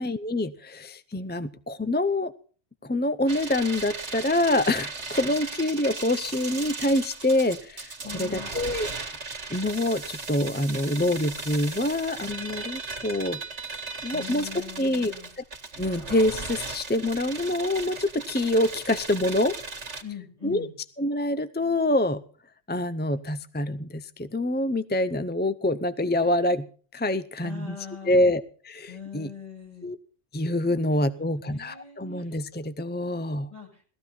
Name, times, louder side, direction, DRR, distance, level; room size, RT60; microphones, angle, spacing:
voice 1, 0.0-2.3 2.8-7.9 8.2-8.9 9.5-13.8 14.0-14.5 14.8-15.1 15.8-19.6 20.4-20.7 21.0-22.2 22.7-26.7 26.9-27.8 28.1-29.3 29.8-30.0 30.3-33.5, left 1 dB, 15° left, 12 dB, 0.4 m, -26 dB
sound 1, 3.3-20.0, right 4 dB, 80° right, 2.3 m, -37 dB
voice 2, 8.0-8.6 14.1-15.3 20.0-20.7 27.4-28.2 28.9-29.9 30.9-32.4 33.5-33.8, left 8 dB, 30° left, -1 dB, 7.5 m, -41 dB
18.5 x 14.0 x 4.2 m, 0.42 s
omnidirectional pair, 1.2 m